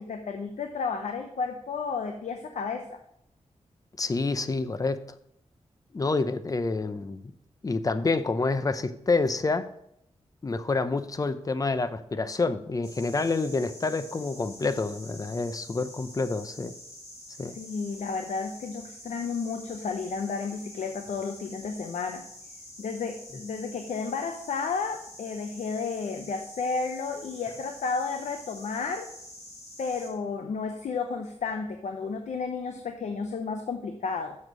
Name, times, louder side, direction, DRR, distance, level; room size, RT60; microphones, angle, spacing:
voice 1, 0.0-3.0 17.5-22.3 22.8-29.1 29.8-34.4, left 5 dB, 90° left, 5 dB, 0.8 m, -32 dB
voice 2, 4.0-5.0 5.9-7.2 7.6-9.7 10.4-16.7 17.4-17.6, left 3 dB, 30° left, 12 dB, 0.6 m, -28 dB
sound 1, 12.8-30.1, left 1 dB, 70° left, 3.4 m, -47 dB
7.1 x 6.4 x 6.0 m, 0.74 s
wide cardioid pair, 100°, 12 cm